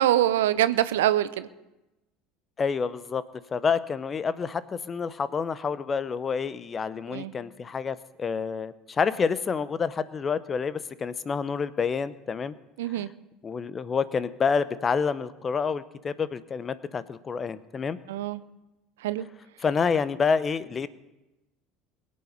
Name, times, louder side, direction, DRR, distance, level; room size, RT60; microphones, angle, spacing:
voice 1, 0.0-1.5 7.1-7.4 12.8-13.1 18.1-18.4 19.0-19.3, right 12 dB, 70° right, 15 dB, 0.6 m, -24 dB
voice 2, 2.6-3.2 3.5-12.5 12.9-13.1 13.4-18.0 19.6-20.9, left 5 dB, 30° left, 16 dB, 0.7 m, -28 dB
22.0 x 8.6 x 5.3 m, 0.98 s
figure-of-eight pair, 70°, 0 cm